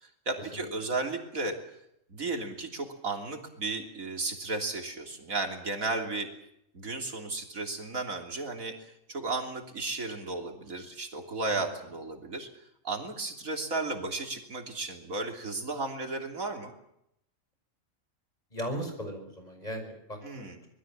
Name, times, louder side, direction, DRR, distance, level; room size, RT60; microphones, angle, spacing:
voice 1, 0.0-1.6 2.1-6.3 6.7-8.8 9.1-12.5 12.8-16.7 20.2-20.6, right 3 dB, 80° right, 4 dB, 3.6 m, -34 dB
voice 2, 18.5-20.7, equal, 30° left, 5 dB, 5.9 m, -38 dB
25.5 x 20.5 x 7.5 m, 0.79 s
omnidirectional pair, 1.4 m